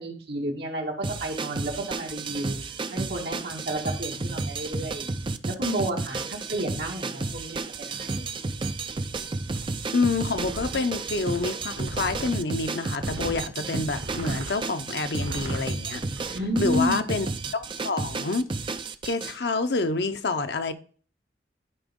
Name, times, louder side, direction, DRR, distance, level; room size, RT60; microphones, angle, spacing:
voice 1, 0.0-2.6 2.9-5.1 5.5-8.2 16.3-17.0, equal, 65° right, 2.1 m, -31 dB
sound 1, 1.0-19.4, right 3 dB, 30° right, 0.4 m, -32 dB
sound 2, 9.2-9.3 9.5-9.6 10.3-12.4 13.0-13.4 13.8-14.5 15.1-15.6 16.1-16.7, right 1 dB, 85° right, 1.5 m, -37 dB
voice 2, 9.9-16.0 16.6-17.3 17.5-18.5 19.0-20.7, left 3 dB, 70° left, 0.8 m, -28 dB
11.0 x 5.0 x 3.7 m
head